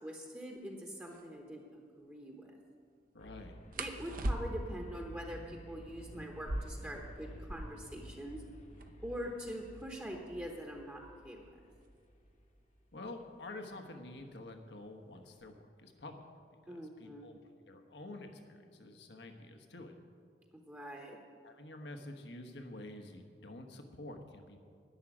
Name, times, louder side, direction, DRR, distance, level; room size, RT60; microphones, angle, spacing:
voice 1, 0.0-2.5 3.8-8.4 9.0-11.5 16.7-17.3 20.5-21.2, equal, 10° right, -1 dB, 1.0 m, -44 dB
sound 1, 0.6-0.7 1.0-1.3 3.7-4.8 6.3-7.9 8.2-8.3 8.5-9.1 9.8-12.3 13.3-13.6 14.0-14.5 14.8-15.6, right 1 dB, 50° right, 0.8 m, -41 dB
voice 2, 3.1-3.6 12.9-16.3 16.6-17.4 17.7-19.9 21.4-24.6, left 2 dB, 75° left, 5 dB, 1.3 m, -48 dB
sound 2, 3.2-13.1, equal, 40° left, 1.0 m, -53 dB
11.0 x 7.4 x 9.9 m, 2.2 s
head